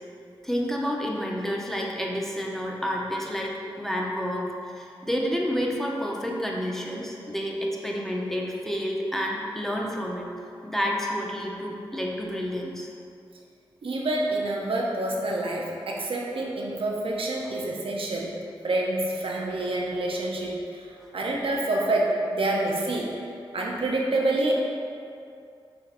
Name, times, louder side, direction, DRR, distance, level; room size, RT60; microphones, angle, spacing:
voice 1, 0.4-10.3 10.6-12.9, equal, 5° left, -2 dB, 0.7 m, -29 dB
voice 2, 13.8-18.3 18.6-23.1 23.5-24.5, right 2 dB, 65° right, -2 dB, 0.6 m, -27 dB
6.4 x 2.8 x 2.5 m, 2.5 s
cardioid pair, 40°, 10 cm